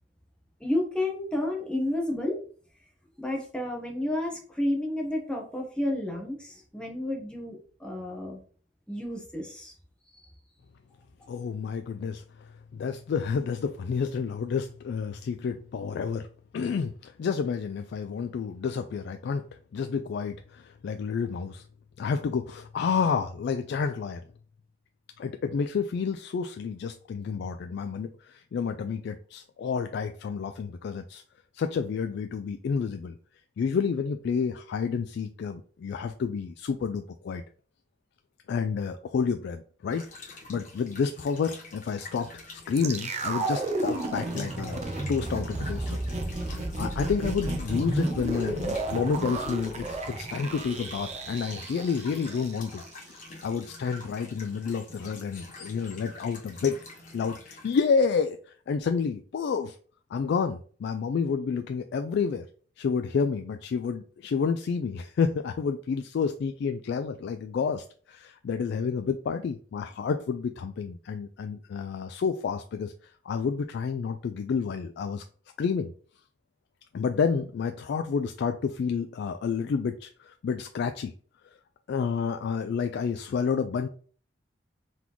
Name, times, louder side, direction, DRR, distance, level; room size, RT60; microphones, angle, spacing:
voice 1, 0.6-2.4 3.2-8.4 8.9-9.7 10.1-10.3, left 1 dB, 5° left, -1 dB, 1.1 m, -31 dB
voice 2, 11.3-16.3 16.5-19.5 19.7-21.6 22.0-24.2 25.2-31.2 31.5-33.2 33.6-37.4 38.5-44.8 45.1-52.8 53.1-56.8 57.1-59.8 60.1-62.5 62.8-75.2 75.6-75.9 76.9-81.1 81.9-83.9, left 5 dB, 65° left, 7 dB, 0.3 m, -30 dB
sound 1, 39.9-57.9, left 3 dB, 45° left, 1.1 m, -47 dB
sound 2, 42.8-52.9 53.2-53.3, right 2 dB, 35° right, 0.6 m, -32 dB
4.0 x 3.6 x 3.0 m, 0.44 s
head